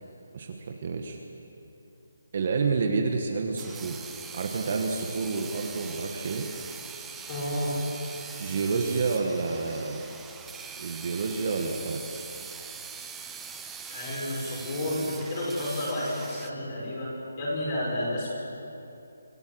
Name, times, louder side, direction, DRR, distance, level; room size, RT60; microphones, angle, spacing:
voice 1, 0.3-1.2 2.3-4.0 4.3-6.5 8.4-10.0 10.8-12.0, right 4 dB, 35° right, 2 dB, 1.4 m, -29 dB
sound 1, 3.6-16.5, right 6 dB, 5° right, 0.5 m, -42 dB
voice 2, 7.3-7.8 13.9-18.3, left 1 dB, 20° left, -4 dB, 6.1 m, -31 dB
26.0 x 15.5 x 7.8 m, 2.8 s
hypercardioid pair, 180°, 0 cm